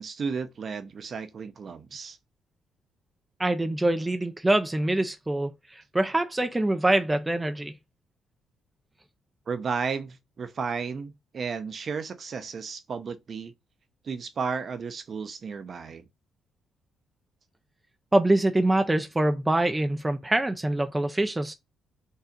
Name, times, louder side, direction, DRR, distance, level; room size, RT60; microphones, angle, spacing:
voice 1, 0.0-2.2 9.5-13.5 14.0-16.0, right 5 dB, 35° right, 0.8 m, -33 dB
voice 2, 3.4-7.7 18.1-21.5, right 1 dB, 10° right, 0.6 m, -24 dB
5.5 x 3.8 x 5.2 m
cardioid pair, 160°, 0 cm